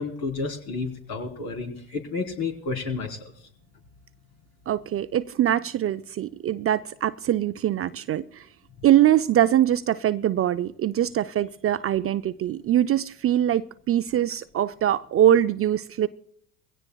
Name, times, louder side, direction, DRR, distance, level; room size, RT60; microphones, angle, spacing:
voice 1, 0.0-3.2, left 4 dB, 60° left, 3.8 m, -31 dB
voice 2, 4.7-8.4 8.8-16.1, right 11 dB, 35° right, 0.5 m, -23 dB
23.0 x 16.5 x 2.3 m
hypercardioid pair, 75°, 43 cm